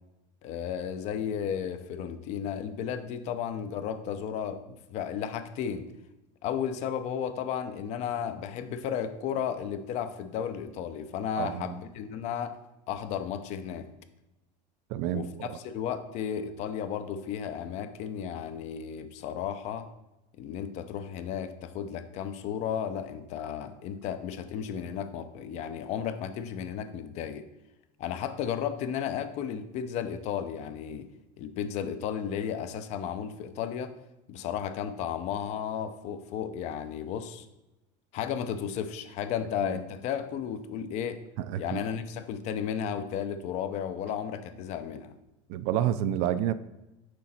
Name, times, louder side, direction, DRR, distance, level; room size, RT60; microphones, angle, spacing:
voice 1, 0.4-5.9 6.4-12.6 12.9-13.9 15.1-19.9 20.4-27.5 28.0-31.1 31.4-33.9 34.3-37.5 38.1-41.2 41.6-45.1, left 8 dB, 45° left, 11 dB, 0.5 m, -34 dB
voice 2, 11.4-11.8 14.9-15.6 39.6-39.8 41.4-41.8 45.5-46.5, right 11 dB, 55° right, 13 dB, 0.4 m, -29 dB
6.3 x 4.2 x 4.2 m, 0.97 s
supercardioid pair, 145°, 16 cm